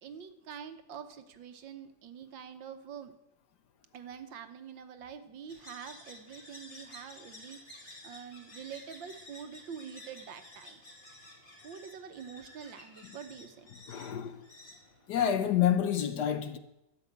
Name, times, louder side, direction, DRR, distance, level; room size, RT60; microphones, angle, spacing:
voice 1, 0.0-3.1 3.9-10.8 11.6-13.7, right 7 dB, 70° right, 1.7 m, -46 dB
sound 1, 5.5-15.7, left 1 dB, 30° left, 3.2 m, -52 dB
voice 2, 13.9-14.5 15.1-16.6, left 9 dB, 65° left, 1.2 m, -28 dB
13.0 x 7.1 x 9.3 m
omnidirectional pair, 2.2 m